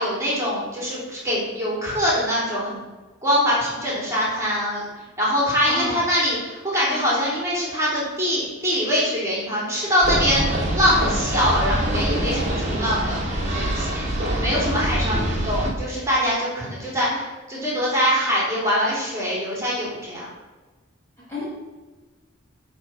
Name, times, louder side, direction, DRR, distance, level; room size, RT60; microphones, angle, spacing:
voice 1, 0.0-2.8 3.2-4.8 5.2-10.4 10.7-13.2 13.5-14.0 14.4-20.3, equal, 15° right, -6 dB, 3.2 m, -23 dB
voice 2, 5.6-6.0 14.6-15.1 21.3-21.4, left 1 dB, 15° left, -9 dB, 2.4 m, -30 dB
sound 1, 10.0-15.7, right 1 dB, 35° right, 1.9 m, -24 dB
10.5 x 4.2 x 6.2 m, 1.3 s
head